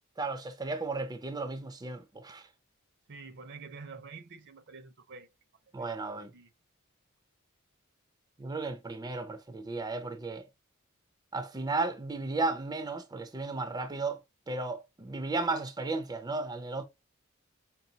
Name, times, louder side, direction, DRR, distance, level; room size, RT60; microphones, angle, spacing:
voice 1, 0.2-2.4 5.7-6.3 8.4-10.4 11.3-14.2 14.5-16.8, right 3 dB, 20° right, 0.5 m, -34 dB
voice 2, 3.1-5.3 6.3-6.5, right 4 dB, 55° right, 0.7 m, -47 dB
5.3 x 2.3 x 2.7 m
head